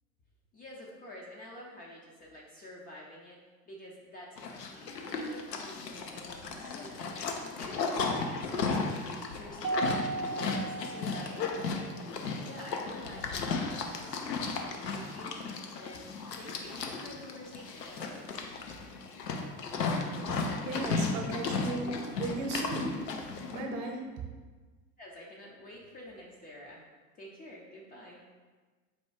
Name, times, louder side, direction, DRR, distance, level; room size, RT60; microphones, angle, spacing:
voice 1, 0.5-3.4 3.7-9.0 9.3-11.6 12.2-16.1 16.4-18.3 18.7-18.8 25.0-26.8 27.2-28.2, left 1 dB, 20° left, -3 dB, 0.4 m, -49 dB
Livestock farm animals working animals, 4.4-23.6, left 4 dB, 80° left, 0.6 m, -35 dB
Mallet percussion, 9.6-12.1, right 3 dB, 85° right, 0.6 m, -36 dB
voice 2, 20.4-22.9 23.5-24.0, right 2 dB, 50° right, 3 dB, 0.9 m, -36 dB
4.2 x 2.2 x 4.6 m, 1.4 s
figure-of-eight pair, 80°, 48 cm